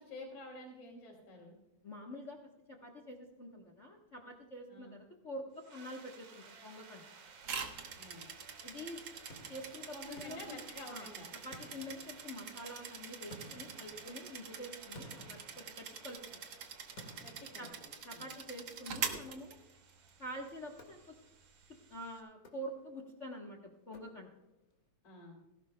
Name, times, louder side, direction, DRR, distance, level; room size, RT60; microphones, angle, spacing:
voice 1, 0.0-1.6 4.7-5.0 8.0-8.3 9.9-11.3 17.2-18.3 25.0-25.4, left 1 dB, 85° left, -5 dB, 4.6 m, -50 dB
voice 2, 1.8-2.4 2.7-7.0 8.6-9.0 9.5-10.6 10.9-11.1 11.4-16.4 17.6-17.7 18.0-19.6 20.2-21.1 21.9-24.3, equal, 65° left, 2 dB, 0.7 m, -46 dB
sound 1, 5.5-22.2, right 5 dB, 75° right, 3.2 m, -58 dB
sound 2, 7.4-20.1, right 6 dB, 55° right, 1.4 m, -45 dB
sound 3, 9.3-11.1 11.5-12.7 13.3-16.3 17.0-18.4 19.1-19.8 20.8-21.5 22.3-23.1 23.9-24.6, equal, 35° left, 1.9 m, -56 dB
18.0 x 16.5 x 2.2 m, 0.96 s
omnidirectional pair, 3.4 m